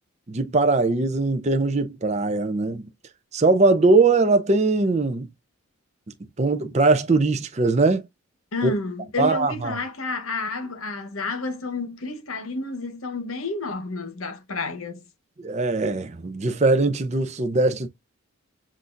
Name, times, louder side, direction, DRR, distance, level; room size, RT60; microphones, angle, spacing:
voice 1, 0.3-2.9 3.3-5.3 6.4-8.0 8.6-8.7 9.2-9.8 15.4-17.9, right 3 dB, 30° right, 0.5 m, -21 dB
voice 2, 8.5-15.0, left 3 dB, 85° left, 1.1 m, -30 dB
7.4 x 2.6 x 2.5 m
head